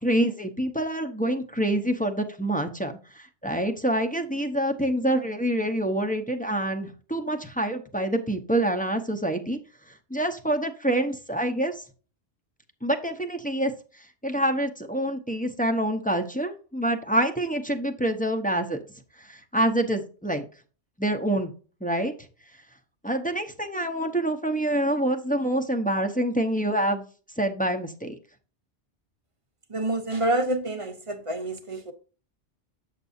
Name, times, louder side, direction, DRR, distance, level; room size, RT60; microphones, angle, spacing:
voice 1, 0.0-9.6 10.1-11.8 12.8-13.7 14.2-18.8 19.2-20.4 21.0-21.5 21.8-22.1 23.0-27.1 27.4-28.2, right 1 dB, 10° left, 0.7 m, -26 dB
voice 2, 29.7-31.9, right 1 dB, 30° right, 0.8 m, -27 dB
8.1 x 6.6 x 2.7 m
omnidirectional pair, 1.2 m